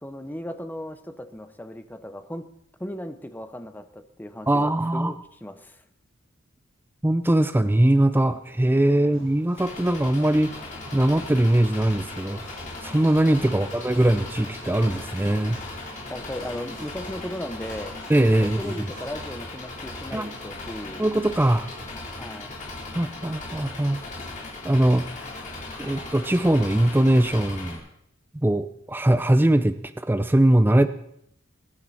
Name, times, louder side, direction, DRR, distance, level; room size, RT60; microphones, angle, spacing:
voice 1, 0.0-2.4 2.8-5.8 9.0-9.2 16.1-17.9 18.6-21.0 22.1-22.6, left 1 dB, 10° left, 9 dB, 0.8 m, -36 dB
voice 2, 4.5-5.1 7.0-10.6 10.9-15.6 18.1-18.7 20.1-20.3 21.0-21.7 22.9-24.0 24.6-25.1 25.8-27.8 28.3-30.9, right 1 dB, 10° right, 11 dB, 0.4 m, -21 dB
sound 1, 8.1-19.2, right 1 dB, 75° right, 7.2 m, -49 dB
Engine, 9.6-27.8, left 2 dB, 40° left, 3.9 m, -38 dB
22.0 x 10.5 x 4.3 m, 0.74 s
head